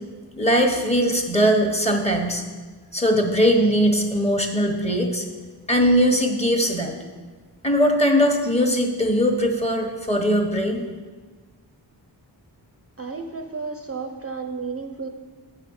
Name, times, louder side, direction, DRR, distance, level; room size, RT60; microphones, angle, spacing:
voice 1, 0.4-2.4 2.9-5.2 5.7-6.9 7.6-10.8, equal, 15° left, 3 dB, 0.9 m, -20 dB
voice 2, 13.0-15.1, right 4 dB, 35° right, 5 dB, 0.5 m, -32 dB
8.7 x 4.8 x 6.3 m, 1.4 s
wide cardioid pair, 115°, 42 cm